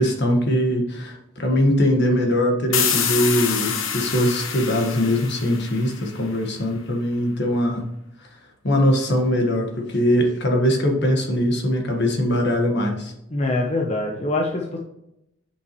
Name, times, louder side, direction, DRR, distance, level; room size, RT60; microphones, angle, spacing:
voice 1, 0.0-7.8 8.6-13.1, equal, 60° left, 2 dB, 1.5 m, -21 dB
sound 1, 2.7-6.3, left 7 dB, 75° left, 1.0 m, -26 dB
voice 2, 13.3-14.8, left 2 dB, 35° left, 0 dB, 0.8 m, -24 dB
8.3 x 5.6 x 3.1 m, 0.82 s
head